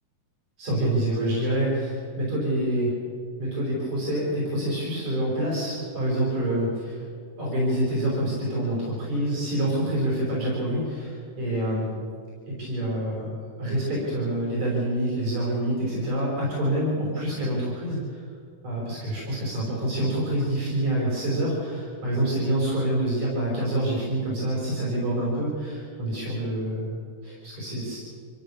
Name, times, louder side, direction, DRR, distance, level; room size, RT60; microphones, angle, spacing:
voice 1, 0.6-3.0 3.4-7.1 7.4-11.9 12.5-13.3 13.6-18.2 18.6-28.0, right 1 dB, 65° right, -5 dB, 7.1 m, -27 dB
25.5 x 17.0 x 7.3 m, 2.1 s
omnidirectional pair, 3.5 m